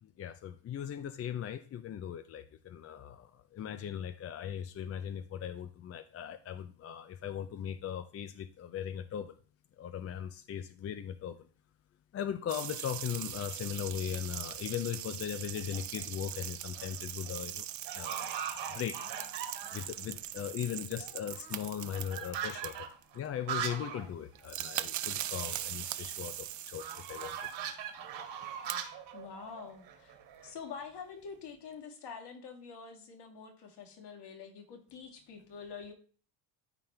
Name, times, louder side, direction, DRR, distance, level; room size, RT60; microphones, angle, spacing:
voice 1, 0.0-9.3 9.8-11.5 12.1-17.7 17.9-18.4 18.7-19.0 19.7-22.9 23.1-27.3, left 9 dB, 30° left, 0.4 m, -39 dB
sound 1, 12.5-23.0 24.1-24.2 24.3-27.6 28.4-28.7, right 12 dB, 40° right, 0.5 m, -41 dB
sound 2, 15.6-16.0 16.5-17.0 17.3-17.4 17.9-20.0 20.4-20.5 20.7-24.1 24.4-24.5 24.8-24.9 26.8-30.5, right 8 dB, 55° right, 2.0 m, -41 dB
voice 2, 29.1-30.2 30.4-35.9, left 6 dB, 55° left, 2.1 m, -46 dB
13.0 x 4.4 x 3.3 m
supercardioid pair, 105°, 50 cm